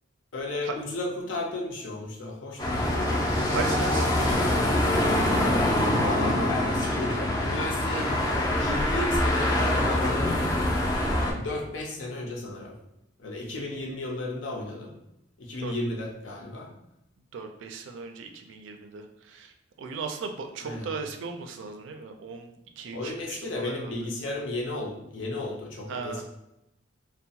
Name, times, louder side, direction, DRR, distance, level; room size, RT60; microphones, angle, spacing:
voice 1, 0.3-2.8 6.0-8.2 8.6-10.4 11.3-12.7 13.2-14.9 15.4-16.7 20.6-20.9 22.9-26.2, left 2 dB, 75° left, -1 dB, 0.6 m, -33 dB
sound 1, 2.6-11.3, left 1 dB, 20° left, 0.3 m, -24 dB
voice 2, 3.5-4.6 15.6-15.7 17.3-24.1 25.9-26.2, right 5 dB, 70° right, 5 dB, 0.3 m, -37 dB
2.7 x 2.1 x 2.7 m, 0.87 s
head